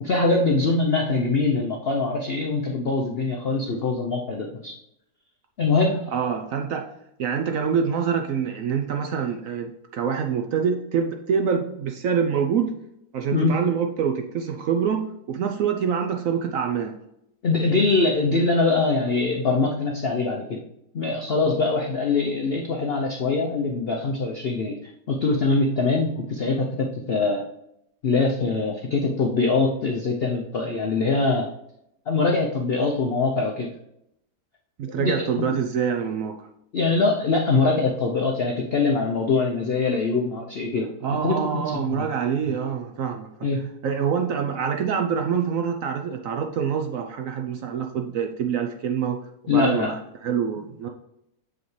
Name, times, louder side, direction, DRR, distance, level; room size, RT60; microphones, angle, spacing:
voice 1, 0.0-4.7 5.6-6.1 13.3-13.6 17.4-20.6 20.9-24.8 25.1-27.4 28.0-31.5 32.1-33.7 34.9-35.6 36.7-40.9 41.2-42.0 43.4-43.6 49.5-49.9, left 3 dB, 65° left, 1 dB, 0.5 m, -23 dB
voice 2, 6.1-6.9 7.2-12.7 13.1-16.9 34.8-36.5 41.0-43.5 43.8-49.2 49.5-50.0 50.2-50.9, right 7 dB, 65° right, 4 dB, 0.8 m, -25 dB
7.0 x 5.0 x 3.1 m, 0.79 s
omnidirectional pair, 1.8 m